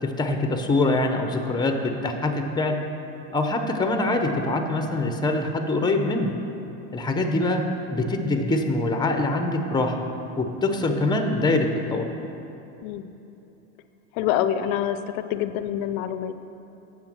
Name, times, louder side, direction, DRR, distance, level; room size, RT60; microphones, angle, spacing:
voice 1, 0.0-2.8 3.3-6.3 6.9-7.6 7.9-10.1 10.4-12.0, left 2 dB, 10° left, 5 dB, 0.7 m, -24 dB
voice 2, 14.1-16.4, left 10 dB, 80° left, 11 dB, 0.6 m, -26 dB
8.7 x 7.2 x 6.0 m, 3.0 s
supercardioid pair, 120°, 42 cm